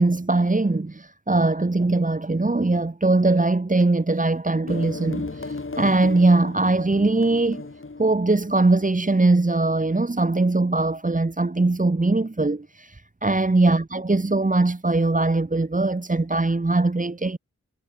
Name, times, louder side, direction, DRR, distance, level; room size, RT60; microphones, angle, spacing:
voice 1, 0.0-7.6 8.0-17.4, right 2 dB, 25° right, 1.4 m, -21 dB
sound 1, 4.7-10.1, left 3 dB, 45° left, 2.9 m, -36 dB
cardioid pair, 45°, 30 cm